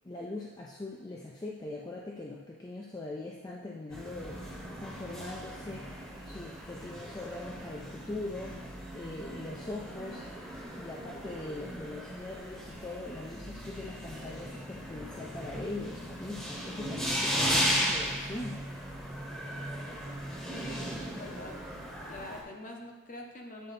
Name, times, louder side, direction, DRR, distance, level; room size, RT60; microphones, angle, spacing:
voice 1, 0.0-5.9 6.2-10.2 10.7-18.7, left 2 dB, 20° left, -3 dB, 0.4 m, -41 dB
sound 1, 3.9-22.4, equal, 5° left, 1.0 m, -36 dB
voice 2, 20.4-21.6 22.1-23.7, left 2 dB, 40° left, 1 dB, 0.8 m, -44 dB
8.5 x 4.0 x 4.1 m, 1.1 s
head